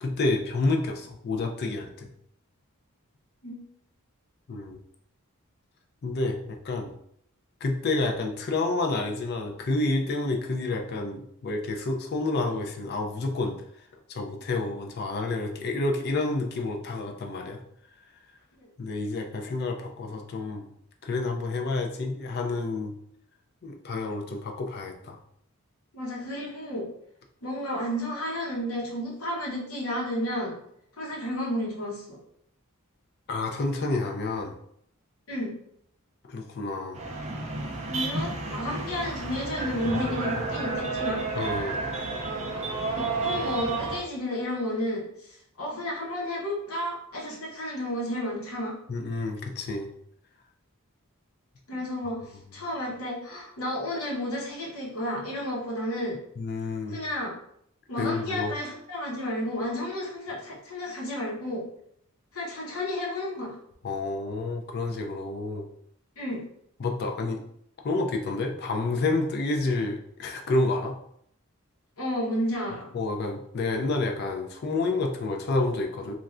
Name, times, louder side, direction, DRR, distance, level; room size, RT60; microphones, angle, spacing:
voice 1, 0.0-2.1 4.5-4.8 6.0-6.9 7.6-13.6 14.1-17.6 18.8-20.7 21.0-22.9 23.6-25.2 33.3-34.5 36.3-37.0 41.4-41.8 48.9-49.9 56.4-57.0 58.0-58.5 63.8-65.7 66.8-67.4 67.8-71.0 72.9-76.1, left 2 dB, 45° left, 3 dB, 0.4 m, -29 dB
voice 2, 25.9-26.9 27.4-30.6 31.0-32.2 35.3-35.5 37.9-41.2 42.9-48.7 51.7-56.2 56.9-57.4 57.9-61.6 62.3-63.6 66.2-66.4 72.0-72.9, left 1 dB, 75° left, -3 dB, 0.9 m, -32 dB
sound 1, 36.9-44.0, right 3 dB, 30° right, 0.4 m, -31 dB
3.1 x 2.3 x 2.4 m, 0.71 s
head